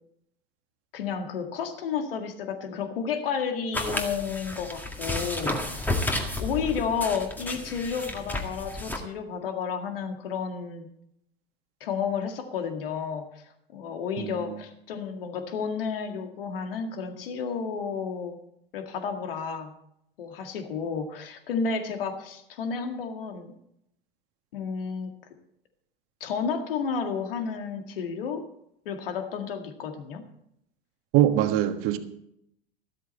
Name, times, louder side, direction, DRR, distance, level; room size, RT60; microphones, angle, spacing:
voice 1, 0.9-6.0 6.4-10.9 11.8-13.4 13.7-18.4 18.7-19.7 20.2-23.5 24.5-25.1 26.2-28.5 28.9-30.2, left 6 dB, 70° left, 6 dB, 2.0 m, -31 dB
sound 1, 3.7-9.0, left 1 dB, 5° left, 1.9 m, -32 dB
voice 2, 14.2-14.6 31.1-32.0, right 12 dB, 50° right, 8 dB, 1.4 m, -23 dB
13.5 x 13.0 x 4.3 m, 0.76 s
hypercardioid pair, 90°, 30 cm